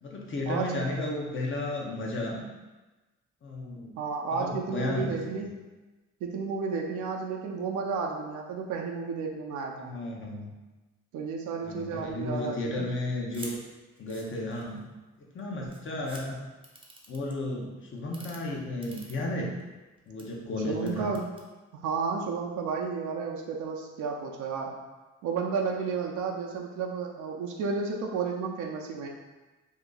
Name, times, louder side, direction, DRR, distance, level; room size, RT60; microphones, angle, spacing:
voice 1, 0.0-2.4 3.4-3.9 4.3-5.2 9.8-10.5 11.6-13.6 14.0-14.8 15.3-16.4 17.1-19.5 20.1-21.1, left 1 dB, 40° left, -2 dB, 0.8 m, -33 dB
voice 2, 4.0-5.6 6.2-9.9 11.1-12.9 20.6-21.3 21.7-24.8 25.2-29.1, right 5 dB, 75° right, 0 dB, 0.5 m, -32 dB
sound 1, 13.3-13.5 14.0-14.8 15.4-15.5 15.7-16.2 16.6-17.3 18.0-18.4 18.8-19.6 20.0-20.2 20.8-21.4, right 2 dB, 15° right, 0.6 m, -46 dB
2.7 x 2.5 x 3.7 m, 1.2 s
cardioid pair, 90°, 30 cm